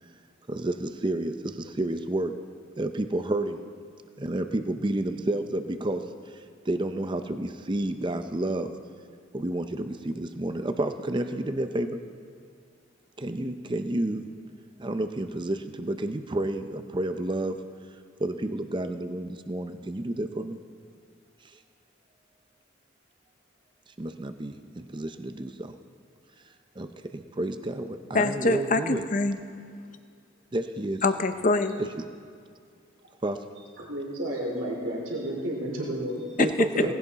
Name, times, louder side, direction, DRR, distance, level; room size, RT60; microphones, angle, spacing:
voice 1, 0.5-2.4 2.8-3.6 4.2-8.7 9.3-12.0 13.2-14.3 14.8-17.6 18.2-20.6 24.0-25.8 26.8-29.0 30.5-31.0 32.0-32.1 33.2-33.4 36.4-36.9, right 1 dB, 25° right, 8 dB, 0.6 m, -30 dB
voice 2, 28.1-29.4 31.0-31.8 36.4-36.5, left 3 dB, 40° left, 9 dB, 0.8 m, -24 dB
voice 3, 33.8-36.3 36.7-36.9, right 1 dB, 75° right, -2 dB, 2.7 m, -31 dB
18.0 x 16.5 x 4.1 m, 2.3 s
head